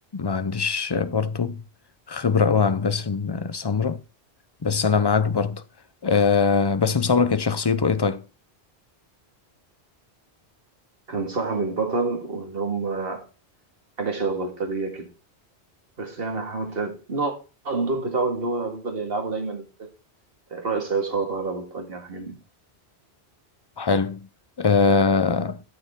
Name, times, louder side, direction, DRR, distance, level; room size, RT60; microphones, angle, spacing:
voice 1, 0.1-1.6 2.1-4.0 4.6-5.6 6.0-8.2 23.8-24.3 24.6-25.6, left 5 dB, 30° left, 0.5 m, -22 dB
voice 2, 11.1-13.3 14.0-15.1 16.0-17.3 17.6-19.9 20.5-22.3, right 3 dB, 60° right, 2.1 m, -28 dB
13.0 x 6.7 x 3.6 m
omnidirectional pair, 1.1 m